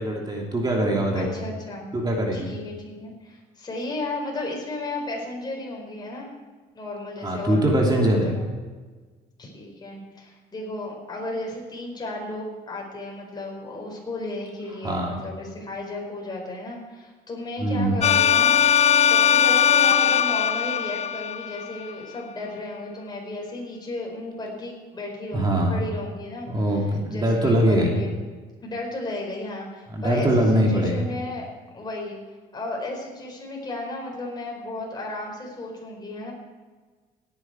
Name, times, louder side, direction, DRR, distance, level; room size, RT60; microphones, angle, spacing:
voice 1, 0.0-1.3 1.9-2.5 7.2-8.3 14.8-15.2 17.6-18.0 25.3-25.8 26.5-28.0 29.9-31.0, right 1 dB, 25° right, 0 dB, 2.7 m, -22 dB
voice 2, 1.1-1.9 2.3-6.3 6.7-8.3 9.4-18.5 19.0-26.7 27.1-28.1 28.6-31.5 31.7-32.2 32.5-36.3, left 2 dB, 25° left, -1 dB, 4.5 m, -34 dB
sound 1, 18.0-21.9, left 8 dB, 40° left, 0.4 m, -19 dB
17.0 x 10.0 x 4.7 m, 1.4 s
cardioid pair, 110°, 17 cm